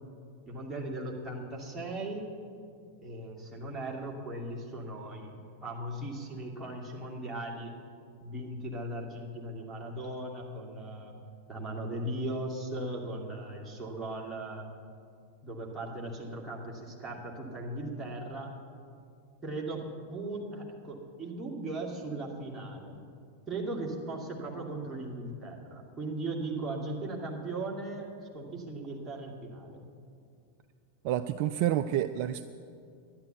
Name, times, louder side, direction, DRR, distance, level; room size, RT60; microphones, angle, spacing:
voice 1, 0.5-2.3 3.0-7.7 8.2-11.1 11.5-14.6 15.4-18.5 19.4-19.8 20.1-23.1 23.5-28.1 28.3-29.9, right 2 dB, 10° right, -3 dB, 2.5 m, -38 dB
voice 2, 31.0-32.4, right 12 dB, 45° right, 11 dB, 0.3 m, -29 dB
11.5 x 10.5 x 8.1 m, 2.4 s
figure-of-eight pair, 90°, 0 cm